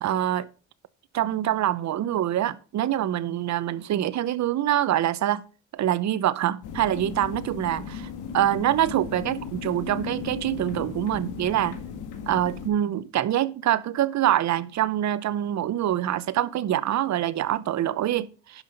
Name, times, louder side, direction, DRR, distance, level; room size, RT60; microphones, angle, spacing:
voice 1, 0.0-0.5 1.1-5.4 5.7-11.8 12.3-18.6, right 12 dB, 65° right, 0.8 m, -25 dB
sound 1, 6.6-12.7, left 6 dB, 85° left, 1.9 m, -36 dB
11.0 x 5.7 x 5.3 m
cardioid pair, 90°, 30 cm